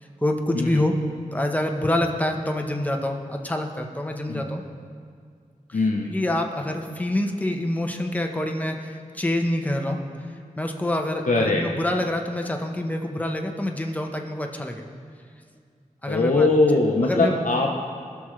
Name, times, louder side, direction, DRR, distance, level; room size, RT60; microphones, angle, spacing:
voice 1, 0.2-0.9 1.3-4.6 5.7-10.0 10.6-14.8 16.0-16.5 17.0-17.3, left 1 dB, 10° left, 2 dB, 1.0 m, -26 dB
voice 2, 5.7-6.1 11.3-11.6 16.1-17.7, left 2 dB, 65° left, 0 dB, 0.8 m, -21 dB
17.5 x 6.2 x 3.2 m, 2.2 s
cardioid pair, 50°, 14 cm